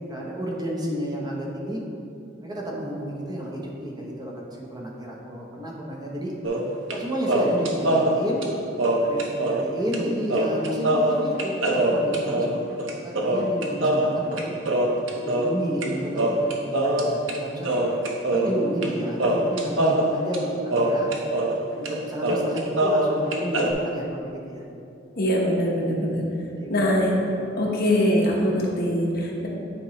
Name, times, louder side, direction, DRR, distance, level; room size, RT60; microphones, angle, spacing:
voice 1, 0.1-1.8 2.4-6.3 6.9-8.4 9.0-12.5 13.0-14.5 15.1-17.7 18.3-21.1 21.7-24.6 25.7-26.1 26.4-26.7 27.5-27.6, equal, 20° right, -3 dB, 0.9 m, -31 dB
sound 1, 6.4-7.0 7.3-9.7 9.9-10.0 10.3-15.9 16.2-17.4 17.6-18.9 19.2-21.6 21.9-22.0 22.2-23.7, right 1 dB, 85° right, 0.7 m, -23 dB
voice 2, 25.2-26.2 26.7-27.1 27.6-29.5, equal, 55° left, -2 dB, 1.1 m, -22 dB
9.9 x 4.4 x 3.1 m, 2.7 s
head